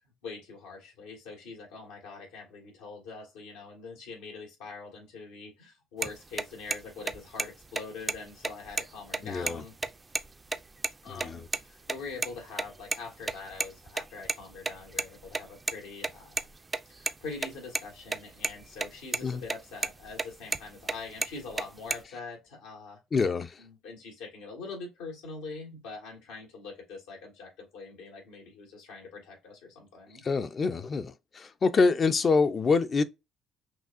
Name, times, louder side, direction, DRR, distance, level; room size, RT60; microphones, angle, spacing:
voice 1, 0.2-9.7 11.0-16.5 16.9-23.0 23.6-30.2, left 4 dB, 85° left, 1.8 m, -43 dB
sound 1, 6.0-6.1 6.4-6.5 6.7-6.8 7.1-7.5 7.8-8.2 8.4-9.5 9.8-9.9 10.1-10.3 10.5-10.9 11.2-11.6 11.9-13.0 13.2-15.7 16.0-17.8 18.1-18.2 18.4-18.9 19.1-19.6 19.8-20.9 21.2-22.0, right 3 dB, 25° right, 0.4 m, -30 dB
voice 2, 9.2-9.6 11.1-11.4 19.2-19.4 23.1-23.6 30.2-33.0, left 4 dB, 40° left, 0.5 m, -26 dB
6.0 x 2.4 x 2.5 m
supercardioid pair, 75°, 0 cm